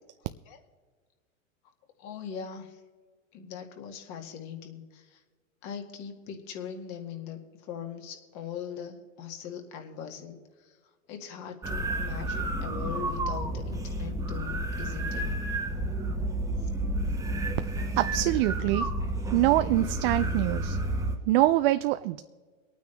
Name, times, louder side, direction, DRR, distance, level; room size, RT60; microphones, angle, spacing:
voice 1, 2.0-2.8 3.3-5.2 5.6-10.4 11.1-15.2, left 7 dB, 45° left, 4 dB, 2.2 m, -40 dB
sound 1, 11.6-21.2, right 1 dB, 10° right, 1.1 m, -31 dB
voice 2, 17.9-18.9 19.3-20.8 21.3-22.2, right 16 dB, 45° right, 11 dB, 0.4 m, -24 dB
22.5 x 9.2 x 3.4 m, 1.5 s
hypercardioid pair, 115°, 41 cm